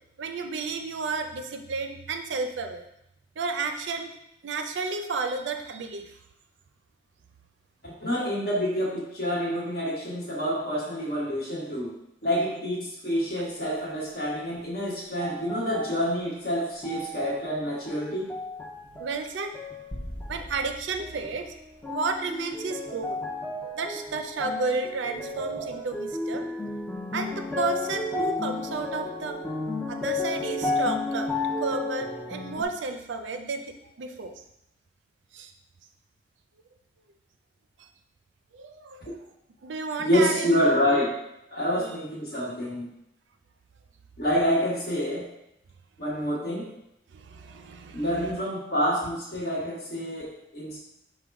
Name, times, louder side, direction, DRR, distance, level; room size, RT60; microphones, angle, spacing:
voice 1, 0.2-2.9 3.4-4.1 4.4-6.2 19.0-19.5 20.3-21.5 21.9-23.2 23.7-26.5 27.1-29.4 29.9-31.3 31.6-34.3 35.3-35.5 38.5-39.0 39.6-40.5 41.8-41.9 47.1-48.4, right 4 dB, 75° right, 6 dB, 0.4 m, -32 dB
voice 2, 7.8-11.9 12.2-18.3 39.0-39.1 40.0-41.1 41.5-42.9 44.2-45.2 46.0-46.7 47.9-50.8, equal, 55° left, -4 dB, 1.3 m, -27 dB
sound 1, 13.6-14.6 15.2-16.2 16.8-17.5 17.9-19.2 19.5-20.4 21.0-21.5 21.8-32.6, left 2 dB, 10° left, 0.3 m, -33 dB
sound 2, 19.9-22.4, equal, 35° left, 0.8 m, -42 dB
5.1 x 2.2 x 4.7 m, 0.82 s
head